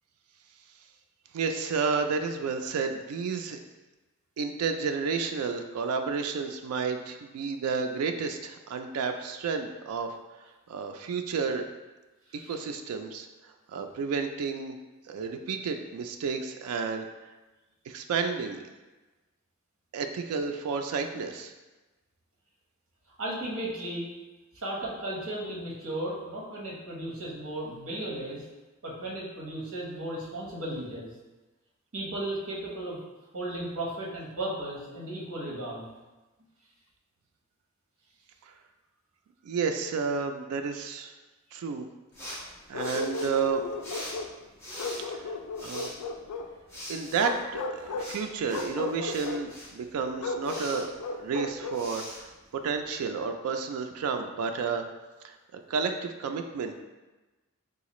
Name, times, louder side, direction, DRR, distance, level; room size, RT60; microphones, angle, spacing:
voice 1, 1.3-3.6 4.4-10.1 10.7-11.7 12.3-14.7 15.1-17.1 17.9-18.6 19.9-21.5 38.4-38.5 39.4-41.1 41.5-41.9 42.3-43.6 45.1-45.3 45.6-45.9 46.9-50.9 51.2-54.8 55.2-56.8, right 5 dB, 80° right, 6 dB, 0.3 m, -31 dB
voice 2, 23.2-24.1 24.5-28.4 28.8-31.1 31.9-33.0 33.3-35.9, right 1 dB, 65° right, -4 dB, 1.0 m, -35 dB
sound 1, 42.1-53.1, equal, 10° left, 0.8 m, -44 dB
Bark, 42.7-44.4 44.8-46.5 47.2-48.1 48.5-49.4 50.2-51.9, left 3 dB, 90° left, 0.3 m, -35 dB
3.9 x 2.4 x 3.0 m, 1.1 s
head